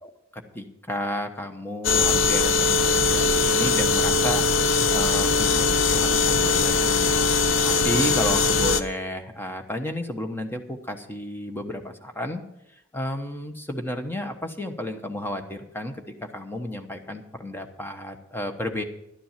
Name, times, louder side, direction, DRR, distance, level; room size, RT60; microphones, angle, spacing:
voice 1, 0.0-7.1 7.6-12.4 12.9-18.8, left 1 dB, 10° left, 5 dB, 1.1 m, -32 dB
sound 1, 1.8-8.8, left 4 dB, 85° left, 0.7 m, -21 dB
11.5 x 10.0 x 5.8 m, 0.83 s
head